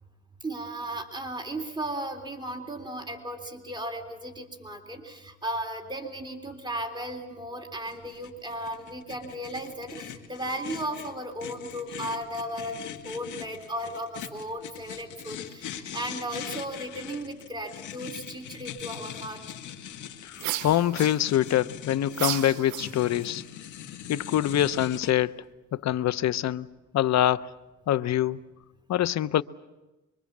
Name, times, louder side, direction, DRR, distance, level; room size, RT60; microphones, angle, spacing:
voice 1, 0.4-19.4, right 1 dB, 15° right, 3.3 m, -35 dB
sound 1, 7.9-25.1, left 10 dB, 80° left, 2.2 m, -41 dB
voice 2, 20.2-23.4 24.1-25.3 25.7-26.7 26.9-27.5 27.9-28.4 28.9-29.4, left 12 dB, 60° left, 0.8 m, -25 dB
sound 2, 20.4-21.5 22.1-23.3, right 14 dB, 80° right, 0.7 m, -33 dB
25.0 x 23.5 x 7.4 m
cardioid pair, 90°, 30 cm